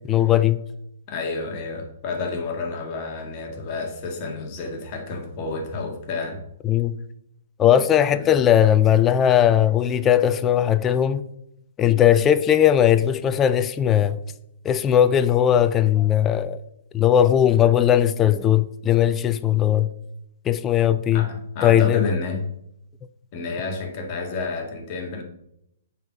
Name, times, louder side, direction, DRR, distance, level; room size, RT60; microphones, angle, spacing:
voice 1, 0.1-0.6 6.6-7.0 7.6-11.2 11.8-14.2 14.6-16.6 16.9-19.9 20.4-21.3 21.6-22.1, left 10 dB, 20° left, 0.4 m, -18 dB
voice 2, 1.1-6.4 8.1-8.3 21.1-22.5 23.3-25.2, left 3 dB, 35° left, 1.8 m, -30 dB
8.9 x 4.2 x 6.1 m
hypercardioid pair, 145°, 0 cm